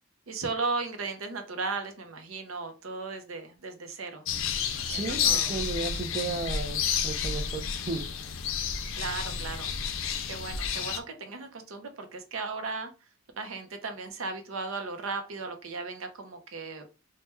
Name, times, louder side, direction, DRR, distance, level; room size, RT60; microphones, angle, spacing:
voice 1, 0.3-4.2 4.8-5.5 9.0-9.7 10.3-12.9 13.4-16.8, right 3 dB, 80° right, 0.6 m, -36 dB
sound 1, 4.3-11.0, left 7 dB, 70° left, 0.4 m, -30 dB
voice 2, 4.9-8.1, right 4 dB, 30° right, 0.4 m, -34 dB
3.0 x 2.2 x 3.2 m
head